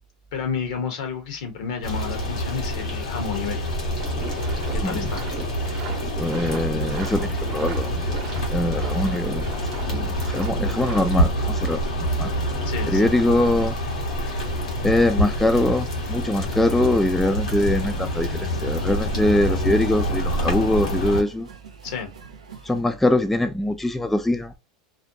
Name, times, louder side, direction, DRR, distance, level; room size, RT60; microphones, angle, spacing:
voice 1, 0.3-3.6 4.7-5.2 12.7-13.1 21.8-22.1, left 6 dB, 70° left, 0.9 m, -31 dB
sound 1, 1.8-21.2, equal, 85° left, 1.1 m, -26 dB
sound 2, 4.0-11.0, right 5 dB, 45° right, 0.7 m, -37 dB
voice 2, 4.8-5.1 6.2-8.1 8.5-9.5 9.9-12.3 12.9-13.8 14.8-21.5 22.6-24.5, left 1 dB, 5° left, 0.3 m, -23 dB
sound 3, 17.3-22.8, right 6 dB, 90° right, 0.6 m, -44 dB
2.5 x 2.1 x 2.6 m
hypercardioid pair, 95°, 3 cm